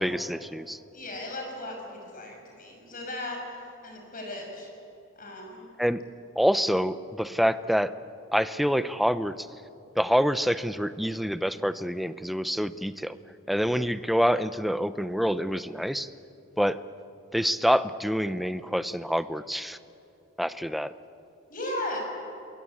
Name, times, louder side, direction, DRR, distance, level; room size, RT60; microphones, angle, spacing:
voice 1, 0.0-0.8 5.8-6.0 6.4-7.9 8.3-9.3 10.0-13.2 13.5-16.1 16.6-16.8 17.3-19.8 20.4-20.9, equal, ahead, 13 dB, 0.6 m, -26 dB
voice 2, 0.9-3.4 3.8-4.7 5.1-5.6 13.7-13.9 21.5-22.0, left 1 dB, 40° left, 1 dB, 6.7 m, -36 dB
27.0 x 22.0 x 8.5 m, 2.8 s
head